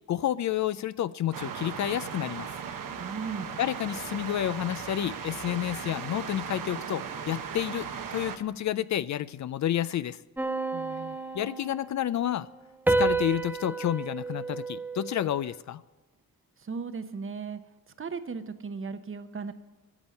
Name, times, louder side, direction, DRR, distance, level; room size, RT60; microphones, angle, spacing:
voice 1, 0.1-2.5 3.6-10.2 11.3-12.5 13.0-15.8, left 11 dB, 55° left, 16 dB, 0.4 m, -30 dB
sound 1, 1.3-8.4, right 7 dB, 65° right, 1.0 m, -37 dB
voice 2, 3.0-3.5 10.7-11.2 16.6-17.6 18.0-19.5, right 5 dB, 35° right, 11 dB, 0.9 m, -36 dB
sound 2, 10.4-12.1 12.9-15.5, right 3 dB, 5° right, 0.7 m, -30 dB
9.8 x 7.0 x 9.1 m, 1.2 s
cardioid pair, 80°, 35 cm